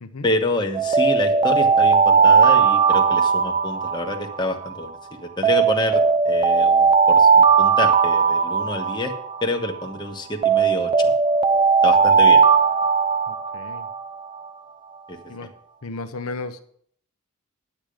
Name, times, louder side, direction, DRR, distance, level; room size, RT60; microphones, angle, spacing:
voice 1, 0.2-9.1 9.4-11.1 11.8-12.4 15.1-15.2, left 2 dB, 20° left, 2 dB, 1.2 m, -27 dB
Alarm, 0.7-4.9 5.4-9.9 10.4-14.2, right 5 dB, 25° right, 0.4 m, -18 dB
voice 2, 13.3-13.9 15.3-15.5 15.8-16.6, left 3 dB, 70° left, 7 dB, 0.7 m, -34 dB
10.0 x 9.1 x 5.0 m, 0.62 s
head